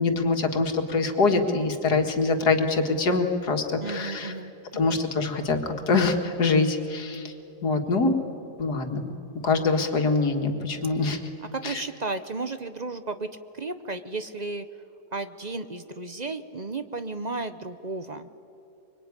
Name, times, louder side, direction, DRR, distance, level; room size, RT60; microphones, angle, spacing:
voice 1, 0.0-4.3 4.7-7.2 7.6-8.1 8.6-9.1 9.4-11.2 11.6-11.8, left 3 dB, 80° left, 4 dB, 2.5 m, -24 dB
voice 2, 3.8-5.0 11.5-13.3 13.6-14.6 15.1-18.3, right 3 dB, 35° right, 10 dB, 0.8 m, -34 dB
24.5 x 23.5 x 9.8 m, 2.7 s
omnidirectional pair, 1.7 m